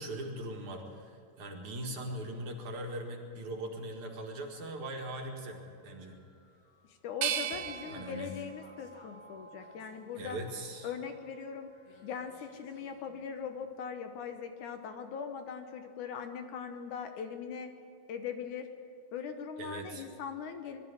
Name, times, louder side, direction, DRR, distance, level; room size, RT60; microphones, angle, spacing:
voice 1, 0.0-6.2 7.9-8.3 10.2-10.9 19.6-20.1, right 1 dB, 60° right, 1 dB, 3.0 m, -40 dB
sound 1, 4.3-13.5, left 3 dB, 85° left, 4.2 m, -62 dB
voice 2, 6.9-10.4 10.8-11.7 12.0-17.7 18.1-18.7 19.1-20.8, left 7 dB, 70° left, 7 dB, 2.2 m, -40 dB
sound 2, 7.2-10.1 10.7-11.5, right 9 dB, 85° right, 1.4 m, -39 dB
22.0 x 12.5 x 9.8 m, 2.3 s
omnidirectional pair, 4.2 m